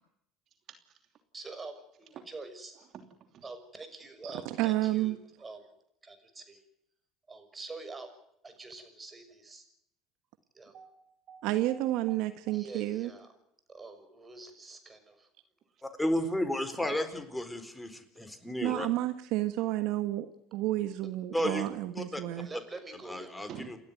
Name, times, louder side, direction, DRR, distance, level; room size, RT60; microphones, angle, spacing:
voice 1, 1.3-1.7 2.0-2.8 3.4-5.6 6.0-6.6 7.3-8.1 8.4-9.6 10.5-10.8 12.5-13.3 13.7-15.3 22.3-23.5, right 3 dB, 20° right, 6.4 m, -46 dB
voice 2, 2.8-3.5 10.7-12.1 15.7-15.8 23.5-23.7, right 8 dB, 50° right, 2.9 m, -49 dB
voice 3, 4.2-5.2 11.4-13.1 18.6-22.5, right 15 dB, 70° right, 1.5 m, -31 dB
voice 4, 15.8-18.9 21.3-21.7 21.9-22.2 23.1-23.8, left 1 dB, 10° left, 4.2 m, -33 dB
30.0 x 12.5 x 9.4 m
supercardioid pair, 85°, 0 cm